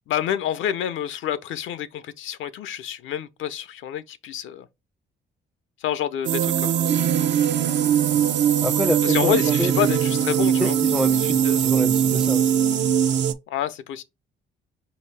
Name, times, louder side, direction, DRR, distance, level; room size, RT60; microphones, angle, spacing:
voice 1, 0.1-4.7 5.8-6.7 9.0-10.7 11.2-11.6 13.5-14.0, left 10 dB, 80° left, 0.6 m, -28 dB
sound 1, 6.2-13.3, right 9 dB, 65° right, 0.5 m, -21 dB
voice 2, 8.6-9.7 10.6-12.4, equal, 5° right, 0.4 m, -27 dB
5.1 x 2.8 x 3.2 m
cardioid pair, 90°, 20 cm